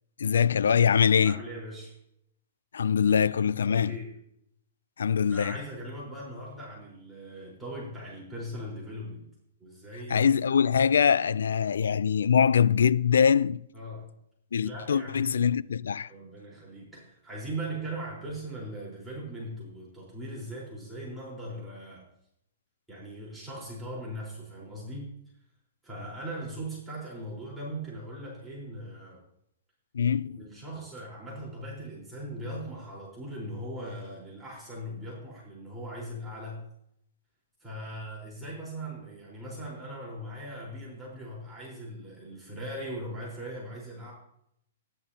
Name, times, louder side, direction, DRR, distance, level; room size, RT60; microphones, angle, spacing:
voice 1, 0.2-1.4 2.7-4.0 5.0-5.6 10.1-13.7 14.5-16.1 29.9-30.4, left 7 dB, 85° left, 0.4 m, -23 dB
voice 2, 1.2-1.9 3.6-4.1 5.3-9.3 9.6-10.3 13.7-14.1 14.6-15.2 16.1-22.1 22.9-25.1 25.8-29.2 30.4-36.7 37.6-44.1, right 1 dB, 5° right, 4.3 m, -39 dB
15.5 x 10.5 x 2.9 m
hypercardioid pair, 150°, 0 cm